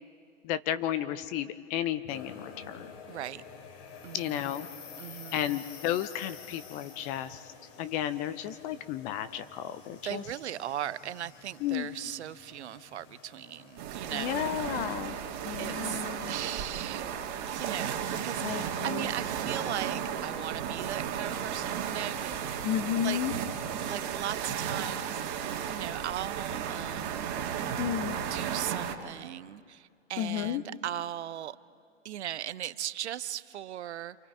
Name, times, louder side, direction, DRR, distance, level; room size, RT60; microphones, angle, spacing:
voice 1, 0.4-2.9 4.1-4.7 5.3-7.4 7.8-10.2 11.6-11.9 14.1-15.2 15.5-16.3 18.4-19.1 22.6-23.3 27.8-28.2 30.2-30.6, left 11 dB, 20° left, 13 dB, 0.5 m, -33 dB
sound 1, 2.1-15.4, left 6 dB, 35° left, 3.2 m, -50 dB
voice 2, 3.1-3.4 4.0-4.4 5.0-5.5 10.0-15.0 15.6-17.0 17.5-22.7 23.0-23.2 23.8-25.2 25.6-27.3 28.3-31.6 32.0-34.2, right 12 dB, 60° right, 16 dB, 0.8 m, -38 dB
sound 2, 13.8-28.9, right 8 dB, 35° right, 2.0 m, -34 dB
27.5 x 27.5 x 4.8 m, 2.1 s
hypercardioid pair, 120°, 38 cm